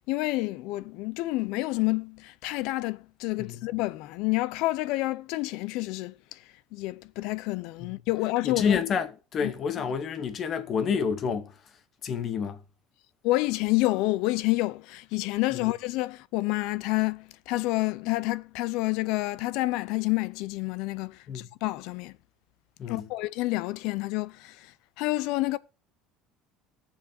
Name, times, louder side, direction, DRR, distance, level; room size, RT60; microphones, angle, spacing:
voice 1, 0.1-6.4 6.7-8.8 9.4-9.5 13.2-22.1 22.9-25.6, left 20 dB, 65° left, 0.6 m, -29 dB
voice 2, 8.4-11.5 12.0-12.6 21.3-21.5 22.8-23.1, left 6 dB, 30° left, 1.0 m, -28 dB
19.0 x 7.3 x 2.7 m
cardioid pair, 175°, 0 cm